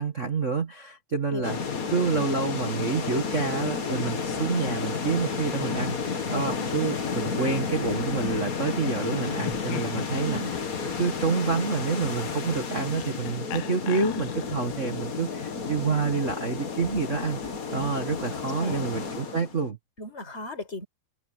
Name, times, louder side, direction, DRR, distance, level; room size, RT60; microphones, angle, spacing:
voice 1, 0.0-1.6 1.9-10.4 11.0-19.8, right 4 dB, 90° right, 0.6 m, -28 dB
sound 1, 1.4-19.6, left 5 dB, 60° left, 0.9 m, -32 dB
voice 2, 6.3-6.7 10.1-10.5 18.6-18.9 20.0-20.9, equal, 15° left, 5.7 m, -36 dB
Laughter, 9.3-14.8, left 15 dB, 90° left, 3.1 m, -40 dB
omnidirectional pair, 4.4 m